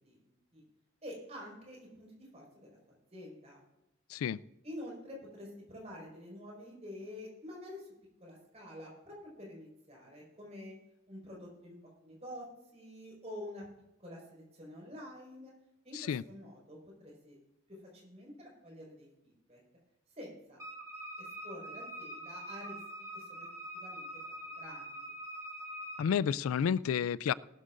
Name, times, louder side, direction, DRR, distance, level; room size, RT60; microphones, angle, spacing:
voice 1, 1.0-3.6 4.6-7.9 8.2-10.7 11.1-11.8 12.0-12.4 12.7-13.6 14.0-15.5 15.8-17.4 17.7-19.6 20.2-20.6 21.2-22.8 23.1-23.5 23.7-25.1, left 1 dB, 30° right, 5.0 m, -48 dB
Wind instrument woodwind instrument, 20.6-26.1, right 1 dB, 15° right, 2.5 m, -44 dB
voice 2, 26.0-27.3, left 8 dB, 85° left, 0.3 m, -30 dB
18.5 x 13.0 x 2.5 m
head